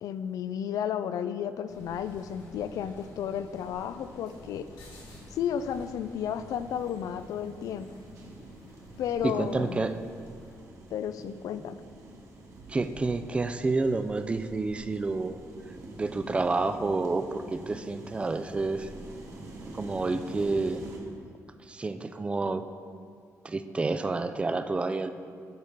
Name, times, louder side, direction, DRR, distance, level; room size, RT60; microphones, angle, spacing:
voice 1, 0.0-4.7 5.3-7.9 9.0-9.8 10.9-11.8, left 9 dB, 70° left, 12 dB, 0.4 m, -33 dB
sound 1, 1.7-10.6, left 1 dB, 90° left, 1.8 m, -50 dB
sound 2, 3.5-21.0, right 1 dB, 55° right, 1.3 m, -47 dB
voice 2, 9.2-10.0 12.7-15.4 16.0-18.9 19.7-20.8 21.7-22.7 23.4-25.1, right 3 dB, 20° right, 10 dB, 0.3 m, -29 dB
9.5 x 3.7 x 5.6 m, 2.2 s
cardioid pair, 125°, 6 cm